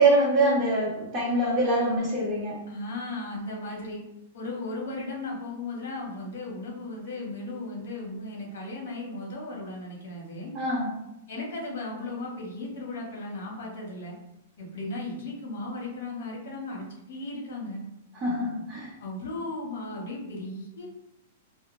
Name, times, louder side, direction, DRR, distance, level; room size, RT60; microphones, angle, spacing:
voice 1, 0.0-2.6 10.5-10.9 18.1-18.9, right 2 dB, 25° right, -5 dB, 0.8 m, -24 dB
voice 2, 2.7-4.0 4.3-10.5 11.3-14.2 14.6-17.8 19.0-20.9, left 2 dB, 70° left, -1 dB, 0.8 m, -36 dB
2.1 x 2.1 x 3.0 m, 0.88 s
hypercardioid pair, 160°, 0 cm